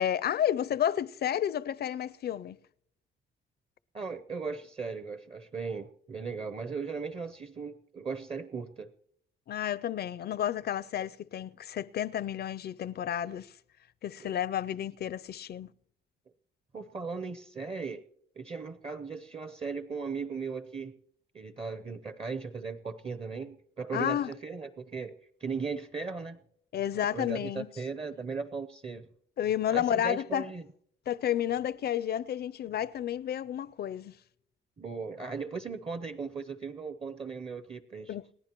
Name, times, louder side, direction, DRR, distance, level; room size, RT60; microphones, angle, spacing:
voice 1, 0.0-2.6 9.5-13.5 14.0-15.7 23.9-24.3 26.7-27.7 29.4-30.5 31.1-34.1 38.1-38.2, left 10 dB, 55° left, 0.5 m, -31 dB
voice 2, 3.9-8.9 14.2-14.4 16.7-18.0 18.4-21.0 21.3-25.1 25.4-26.4 27.1-29.1 29.7-30.6 34.8-38.1, right 5 dB, 30° right, 0.7 m, -37 dB
28.5 x 10.5 x 3.0 m
cardioid pair, 90°, 20 cm